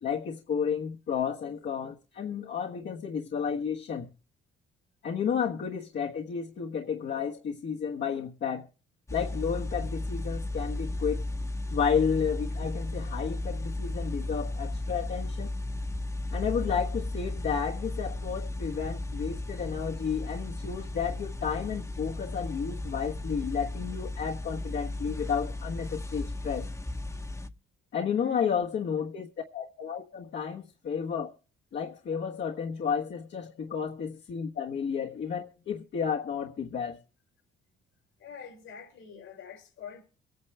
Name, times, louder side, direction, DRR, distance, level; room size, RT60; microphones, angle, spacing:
voice 1, 0.0-4.1 5.0-8.7 9.1-11.2 11.7-15.5 16.3-26.7 27.9-31.3 31.7-37.0, left 7 dB, 60° left, 1.4 m, -32 dB
sound 1, 9.1-27.5, left 2 dB, 15° left, 1.1 m, -35 dB
voice 2, 28.1-28.6 38.2-40.0, left 6 dB, 85° left, 5.6 m, -46 dB
23.5 x 9.5 x 3.3 m
cardioid pair, 90°, 20 cm